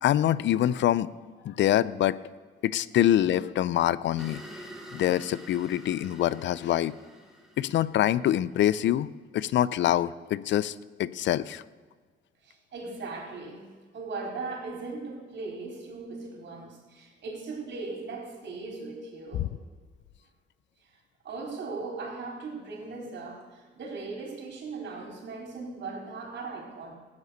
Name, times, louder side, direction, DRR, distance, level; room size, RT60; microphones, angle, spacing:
voice 1, 0.0-1.1 1.4-2.2 2.6-4.4 4.9-7.0 7.6-11.6 19.4-19.5, left 12 dB, 65° left, 18 dB, 0.5 m, -25 dB
sound 1, 4.2-8.8, equal, ahead, 2.4 m, -47 dB
voice 2, 12.4-13.7 13.9-19.5 21.2-26.9, right 3 dB, 65° right, 0 dB, 4.4 m, -38 dB
15.0 x 9.6 x 6.5 m, 1.5 s
cardioid pair, 90°, 20 cm